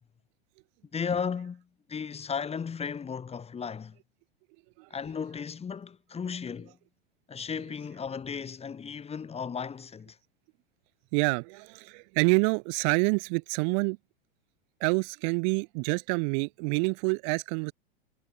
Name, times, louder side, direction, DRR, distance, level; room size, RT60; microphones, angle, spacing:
voice 1, 0.9-1.6 1.9-4.0 4.9-6.7 7.3-10.2, left 6 dB, 20° left, 5.7 m, -35 dB
voice 2, 11.1-14.0 14.8-17.7, right 39 dB, 50° right, 7.2 m, -27 dB
figure-of-eight pair, 90°, 29 cm